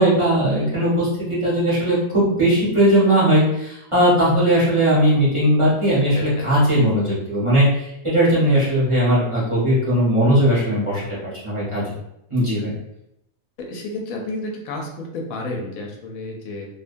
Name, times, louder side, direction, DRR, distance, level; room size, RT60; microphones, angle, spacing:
voice 1, 0.0-11.0 11.4-11.8 12.3-12.7, right 1 dB, 25° right, -10 dB, 0.8 m, -18 dB
voice 2, 6.1-6.5 13.7-16.7, left 2 dB, 85° left, 1 dB, 1.0 m, -31 dB
2.7 x 2.2 x 2.5 m, 0.81 s
omnidirectional pair, 1.4 m